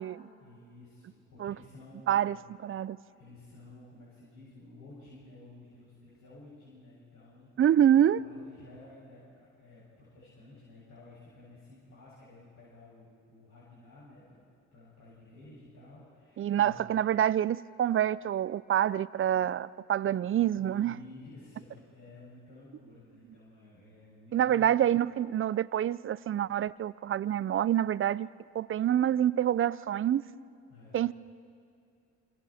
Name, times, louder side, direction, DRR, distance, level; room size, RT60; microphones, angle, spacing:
voice 1, 0.4-2.4 3.1-7.5 7.9-16.9 20.0-20.2 20.4-24.8 30.7-31.1, left 2 dB, 70° left, 6.8 m, -53 dB
voice 2, 2.6-3.0 7.6-8.2 16.4-21.0 24.3-30.2 30.9-31.1, right 10 dB, 45° right, 0.5 m, -27 dB
27.5 x 25.0 x 4.3 m
cardioid pair, 90°, 30 cm